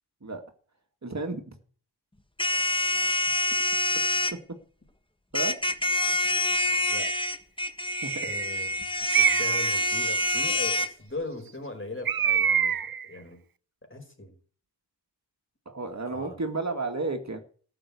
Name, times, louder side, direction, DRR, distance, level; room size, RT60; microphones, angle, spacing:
voice 1, 1.0-1.4 5.3-5.6 8.0-8.1 15.7-17.4, right 3 dB, 40° right, 5 dB, 2.1 m, -31 dB
sound 1, 2.4-4.3 5.3-10.9, left 1 dB, 10° left, 1.5 m, -26 dB
Bird, 6.7-7.2 7.9-8.5 9.1-9.7 12.1-13.1, right 8 dB, 55° right, 0.7 m, -26 dB
voice 2, 8.2-13.4 13.9-14.3 16.1-16.4, left 2 dB, 30° left, 4 dB, 4.8 m, -39 dB
14.0 x 7.9 x 8.3 m, 0.43 s
wide cardioid pair, 75°, 42 cm